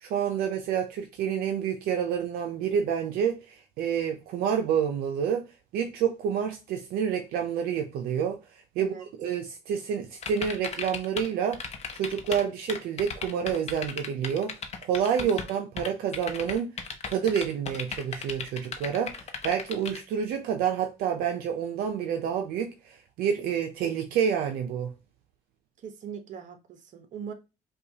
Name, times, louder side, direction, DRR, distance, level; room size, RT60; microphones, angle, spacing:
voice 1, 0.0-5.4 5.7-8.4 8.8-8.9 9.2-11.6 11.9-14.5 14.8-16.7 17.1-24.9, right 8 dB, 80° right, 0.6 m, -28 dB
sound 1, 10.2-11.3 11.5-12.4 12.7-15.5 15.8-20.0, left 6 dB, 45° left, 0.8 m, -35 dB
voice 2, 25.8-27.3, right 7 dB, 55° right, 0.9 m, -40 dB
5.2 x 2.4 x 2.8 m
cardioid pair, 90°, 15 cm